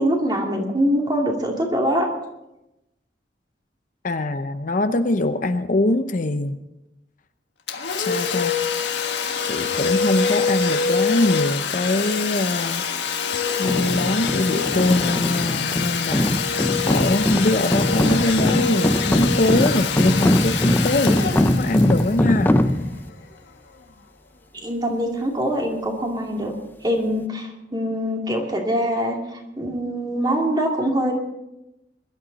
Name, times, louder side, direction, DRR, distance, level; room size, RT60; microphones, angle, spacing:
voice 1, 0.0-2.1 24.5-26.5 26.8-29.2 29.6-31.1, equal, 25° right, 1 dB, 2.6 m, -23 dB
voice 2, 4.0-6.6 8.0-8.6 9.4-12.8 13.6-22.5, left 2 dB, 50° left, 9 dB, 0.7 m, -23 dB
Domestic sounds home sounds, 7.7-23.1, left 6 dB, 80° left, 1.5 m, -25 dB
sound 1, 13.6-23.1, left 1 dB, 10° left, 0.5 m, -22 dB
22.0 x 12.0 x 4.1 m, 0.92 s
head